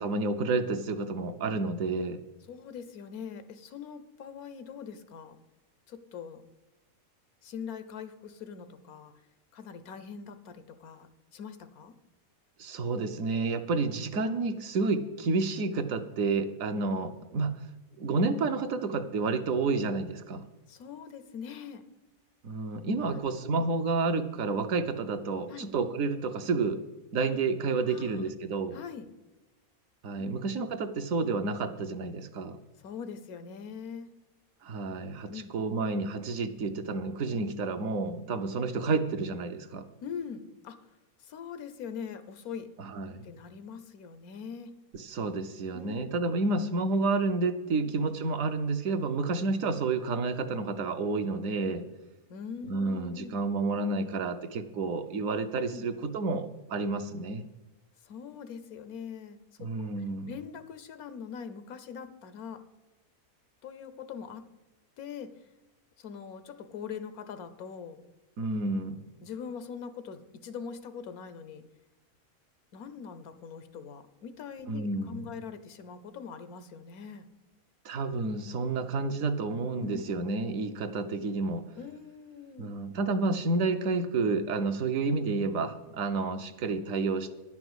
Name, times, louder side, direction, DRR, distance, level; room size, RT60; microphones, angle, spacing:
voice 1, 0.0-2.2 12.6-17.6 18.0-20.4 22.4-26.8 27.1-28.8 30.0-32.6 34.6-39.8 42.8-43.4 44.9-51.8 52.7-57.4 59.6-60.3 68.4-69.0 74.7-75.3 77.8-81.6 82.6-87.3, right 3 dB, 70° right, 8 dB, 1.2 m, -30 dB
voice 2, 2.5-5.4 5.9-6.4 7.4-9.1 9.5-11.9 18.4-18.5 20.7-21.8 23.0-23.7 25.5-25.7 27.9-28.3 28.7-29.1 30.2-30.4 32.8-34.1 35.3-35.5 40.0-40.8 41.2-42.7 43.2-44.7 45.7-46.1 47.8-47.9 52.3-53.3 55.7-55.9 58.0-62.6 63.6-64.5 65.0-65.3 66.0-68.0 69.2-71.6 72.7-77.3 79.8-80.0 81.7-82.7, left 6 dB, 90° left, 11 dB, 1.4 m, -42 dB
11.0 x 5.9 x 8.0 m, 1.1 s
omnidirectional pair, 1.5 m